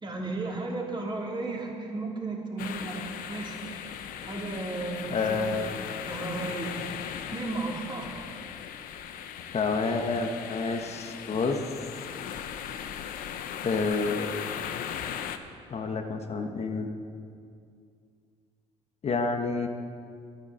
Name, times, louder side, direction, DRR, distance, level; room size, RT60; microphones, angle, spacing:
voice 1, 0.0-5.5 6.0-6.7 7.3-8.1, right 3 dB, 30° right, -2 dB, 3.2 m, -34 dB
sound 1, 2.6-15.4, left 9 dB, 75° left, 0.8 m, -38 dB
voice 2, 5.1-5.7 9.5-11.6 13.6-14.3 15.7-16.9 19.0-19.7, left 4 dB, 45° left, 5 dB, 1.2 m, -28 dB
10.5 x 10.0 x 7.9 m, 2.3 s
supercardioid pair, 70°, 15 cm